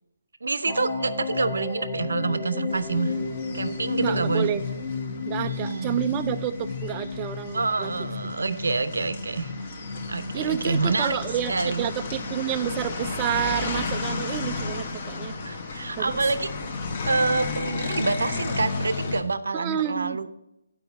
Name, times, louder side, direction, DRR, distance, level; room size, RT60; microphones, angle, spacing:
voice 1, 0.4-3.2 3.5-4.5 5.4-6.0 7.5-9.5 10.1-11.2 11.5-11.9 15.4-16.5 17.1-20.3, right 3 dB, 80° right, 13 dB, 0.6 m, -27 dB
sound 1, 0.7-14.7, left 4 dB, 10° left, 0.9 m, -34 dB
sound 2, 2.7-19.2, left 4 dB, 35° left, 0.9 m, -34 dB
voice 2, 4.0-4.6 5.3-7.9 10.3-11.5 11.8-15.3 16.0-16.1 19.5-20.2, right 10 dB, 20° right, 6 dB, 0.3 m, -29 dB
6.9 x 4.9 x 7.0 m, 0.87 s
hypercardioid pair, 160°, 0 cm